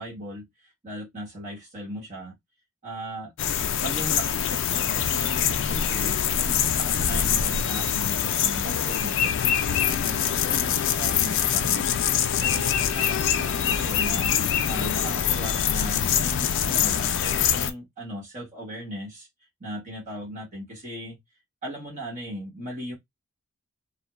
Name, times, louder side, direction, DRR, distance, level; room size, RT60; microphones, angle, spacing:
voice 1, 0.0-2.4 2.8-3.3 3.8-11.8 12.4-14.3 14.7-19.3 19.6-21.2 21.6-22.9, equal, 35° right, 1.1 m, -37 dB
sound 1, 3.4-17.7, left 8 dB, 55° left, 0.3 m, -24 dB
2.3 x 2.2 x 2.9 m
head